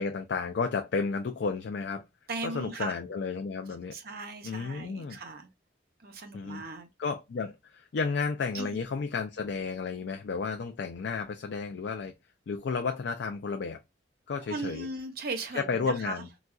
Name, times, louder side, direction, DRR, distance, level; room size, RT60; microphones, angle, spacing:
voice 1, 0.0-2.0 2.4-3.9 4.4-5.2 6.3-6.6 7.0-12.1 12.5-13.8 14.3-14.9 15.5-16.3, left 5 dB, 65° left, 0.4 m, -32 dB
voice 2, 2.3-3.0 3.9-5.5 6.0-6.9 8.5-8.8 14.5-16.2, right 3 dB, 55° right, 0.7 m, -37 dB
4.0 x 2.3 x 2.3 m
head